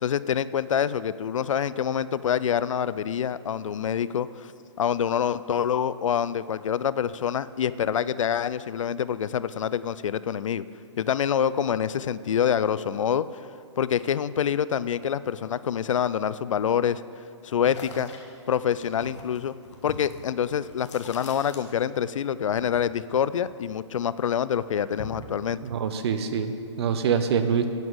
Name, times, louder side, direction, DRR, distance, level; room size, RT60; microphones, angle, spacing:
voice 1, 0.0-4.5 4.8-10.6 11.0-13.2 13.8-17.0 17.4-18.1 18.5-19.5 19.8-25.6, left 8 dB, 90° left, 17 dB, 0.4 m, -26 dB
sound 1, 17.6-22.1 22.4-24.0 24.4-25.4, left 4 dB, 65° left, 1.7 m, -43 dB
voice 2, 25.6-27.7, right 7 dB, 55° right, 9 dB, 1.0 m, -25 dB
9.3 x 7.3 x 7.9 m, 2.3 s
hypercardioid pair, 145°, 16 cm